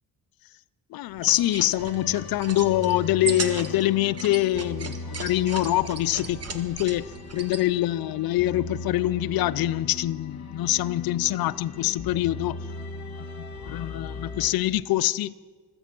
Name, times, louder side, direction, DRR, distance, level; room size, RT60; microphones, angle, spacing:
voice 1, 0.9-12.6 13.2-13.3 13.7-15.3, left 15 dB, 70° left, 0.6 m, -25 dB
sound 1, 1.1-7.6, right 5 dB, 40° right, 1.6 m, -37 dB
sound 2, 1.8-14.5, left 3 dB, 45° left, 2.3 m, -38 dB
25.0 x 8.5 x 6.0 m
cardioid pair, 95°, 37 cm